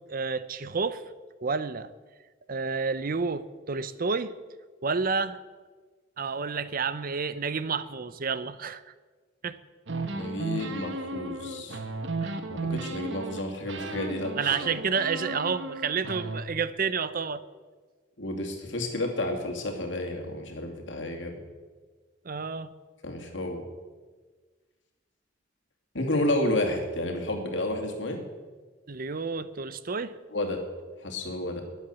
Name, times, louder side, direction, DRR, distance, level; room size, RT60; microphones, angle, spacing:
voice 1, 0.1-1.0 1.4-1.9 2.5-4.3 4.8-5.4 6.2-8.8 9.4-9.6 12.2-12.4 14.4-17.4 22.2-22.7 28.9-30.2, right 5 dB, 50° right, 14 dB, 0.7 m, -30 dB
sound 1, 9.9-13.4 13.7-16.4, right 3 dB, 75° right, 1.3 m, -34 dB
voice 2, 10.1-11.8 12.5-14.3 18.2-21.4 23.0-23.6 25.9-28.2 30.3-30.6 31.0-31.6, left 1 dB, 70° left, 3 dB, 2.7 m, -31 dB
21.0 x 8.2 x 7.0 m, 1.4 s
head